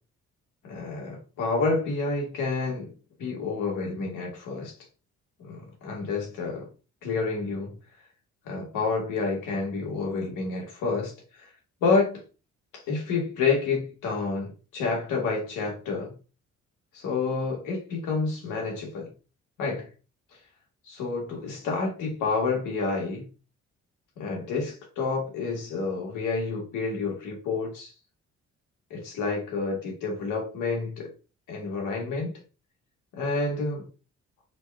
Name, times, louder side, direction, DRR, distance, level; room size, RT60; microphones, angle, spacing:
voice 1, 0.6-2.9 3.2-4.7 5.4-6.7 7.0-7.7 8.5-11.1 11.8-12.2 12.7-16.1 16.9-19.1 19.6-19.9 20.9-23.3 24.2-27.9 28.9-31.1 31.5-32.3 33.2-33.9, left 4 dB, 90° left, 1.7 m, -29 dB
5.9 x 2.4 x 3.4 m
cardioid pair, 90°, 30 cm